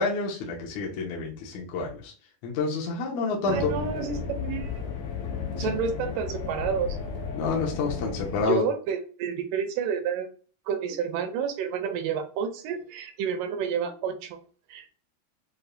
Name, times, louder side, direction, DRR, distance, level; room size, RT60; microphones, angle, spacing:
voice 1, 0.0-2.1 2.4-3.7 5.6-5.8 7.3-8.6, left 4 dB, 70° left, -2 dB, 2.0 m, -28 dB
sound 1, 3.5-8.4, left 6 dB, 90° left, 2.7 m, -34 dB
voice 2, 3.5-4.8 5.6-7.0 8.5-10.3 10.7-14.4 14.7-14.9, right 7 dB, 80° right, 7 dB, 2.1 m, -30 dB
6.7 x 2.3 x 2.6 m, 0.40 s
omnidirectional pair, 4.1 m